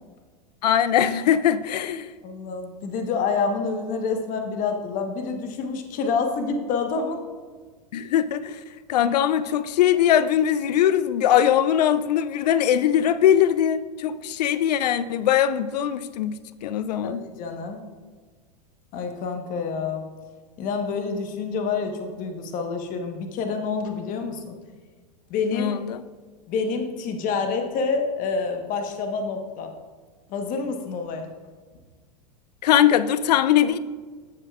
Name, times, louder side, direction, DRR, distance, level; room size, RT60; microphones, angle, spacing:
voice 1, 0.6-2.1 7.9-8.6 8.9-16.4 16.6-17.2 25.5-26.0 32.6-33.8, left 10 dB, 75° left, 0.5 m, -21 dB
voice 2, 2.2-7.2 17.0-17.8 18.9-20.1 20.6-24.5 25.3-25.7 26.5-29.7 30.3-31.3, left 4 dB, 40° left, 1.1 m, -27 dB
14.5 x 5.5 x 2.4 m
hypercardioid pair, 105°, 21 cm